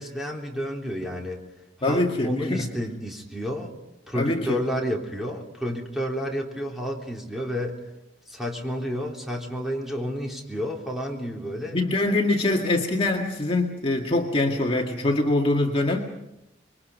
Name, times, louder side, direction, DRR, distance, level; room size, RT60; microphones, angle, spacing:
voice 1, 0.0-1.4 1.9-3.7 4.1-7.8 8.3-11.8, equal, ahead, -1 dB, 3.5 m, -30 dB
voice 2, 1.8-2.7 4.1-4.6 11.7-16.0, left 2 dB, 30° left, 0 dB, 2.0 m, -24 dB
27.0 x 23.0 x 5.4 m, 0.85 s
head